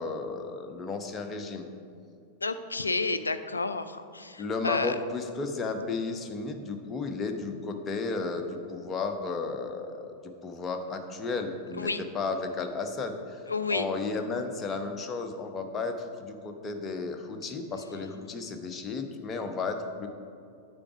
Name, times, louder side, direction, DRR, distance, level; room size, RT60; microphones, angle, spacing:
voice 1, 0.0-1.7 4.4-11.9 12.1-13.4 13.7-20.1, left 4 dB, 20° left, 5 dB, 0.8 m, -33 dB
voice 2, 2.4-5.0 11.7-12.0 13.5-13.9, left 3 dB, 80° left, 11 dB, 0.4 m, -30 dB
8.8 x 4.9 x 5.9 m, 2.4 s
figure-of-eight pair, 90°, 0 cm